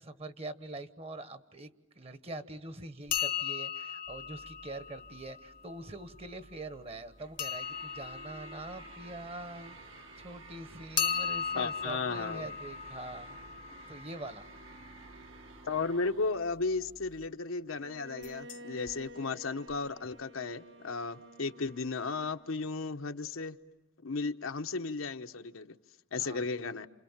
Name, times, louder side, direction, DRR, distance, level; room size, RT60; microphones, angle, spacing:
voice 1, 0.0-9.8 10.2-13.4 13.9-14.5 26.2-26.4, right 2 dB, 30° right, 12 dB, 1.1 m, -44 dB
sound 1, 3.1-5.8 7.4-10.1 11.0-14.8 18.2-18.6 18.9-19.0 19.7-19.8 20.0-20.1, left 7 dB, 40° left, 0.9 m, -37 dB
sound 2, 4.1-17.3, right 3 dB, 75° right, 2.1 m, -53 dB
voice 2, 11.5-12.5 15.6-23.6 24.0-25.7 26.1-26.9, left 4 dB, 80° left, 6 dB, 1.1 m, -35 dB
Bowed string instrument, 17.7-22.8, right 1 dB, 60° right, 1.5 m, -52 dB
29.0 x 28.0 x 7.3 m, 1.1 s
head